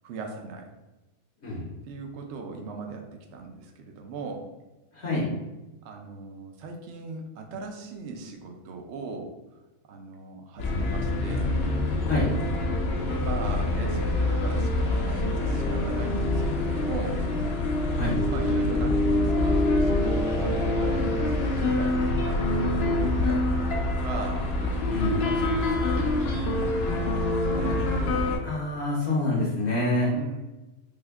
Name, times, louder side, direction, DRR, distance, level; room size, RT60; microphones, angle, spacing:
voice 1, 0.0-0.7 1.8-4.5 5.8-9.3 9.9-11.6 13.1-17.3 18.3-21.1 21.5-24.5 25.2-27.8 30.1-30.4, right 3 dB, 65° right, 3 dB, 0.7 m, -39 dB
voice 2, 4.9-5.3 12.0-12.3 17.9-18.2 24.8-25.2 28.4-30.1, left 2 dB, 55° left, -5 dB, 0.9 m, -26 dB
sound 1, 10.6-28.4, left 2 dB, 70° left, 0.6 m, -25 dB
3.4 x 2.1 x 3.4 m, 1.1 s
omnidirectional pair, 1.6 m